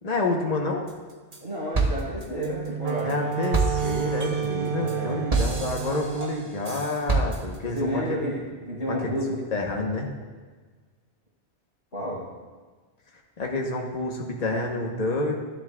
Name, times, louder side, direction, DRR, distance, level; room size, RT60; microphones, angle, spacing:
voice 1, 0.0-0.8 3.0-8.2 8.9-10.1 13.4-15.3, left 3 dB, 40° left, 1 dB, 1.1 m, -29 dB
sound 1, 0.9-1.4 1.7-7.8, right 3 dB, 35° right, 1.1 m, -29 dB
voice 2, 1.4-3.2 4.7-5.2 7.6-9.4 11.9-12.2, equal, 65° left, -8 dB, 3.5 m, -30 dB
Wind instrument woodwind instrument, 2.4-6.5, right 10 dB, 55° right, 0.8 m, -30 dB
12.5 x 11.0 x 2.4 m, 1.4 s
omnidirectional pair, 1.1 m